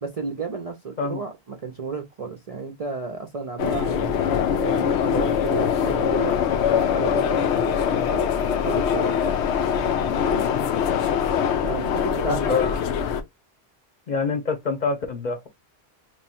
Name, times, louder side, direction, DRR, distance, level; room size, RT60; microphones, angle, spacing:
voice 1, 0.0-4.2 4.6-6.4 6.7-9.3 10.1-10.5 11.6-12.7, right 4 dB, 45° right, 0.5 m, -32 dB
sound 1, 3.6-13.2, left 8 dB, 90° left, 0.9 m, -23 dB
voice 2, 10.5-10.8 12.3-12.9 14.1-15.5, left 4 dB, 45° left, 0.8 m, -26 dB
3.0 x 2.2 x 4.1 m
omnidirectional pair, 1.1 m